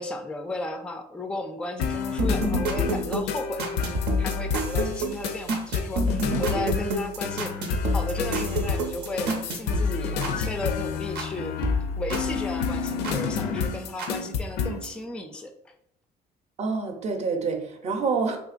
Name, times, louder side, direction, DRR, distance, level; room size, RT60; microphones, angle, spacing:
voice 1, 0.0-11.6 12.0-15.5, left 1 dB, 5° left, 5 dB, 0.4 m, -35 dB
sound 1, 1.8-14.9, left 6 dB, 80° left, 0.4 m, -30 dB
sound 2, 2.2-11.3 11.6-13.2 14.0-14.1, equal, 80° right, 0.7 m, -29 dB
voice 2, 16.6-18.4, right 4 dB, 40° right, 4 dB, 0.6 m, -27 dB
3.7 x 2.8 x 2.5 m, 0.74 s
cardioid pair, 110°, 17 cm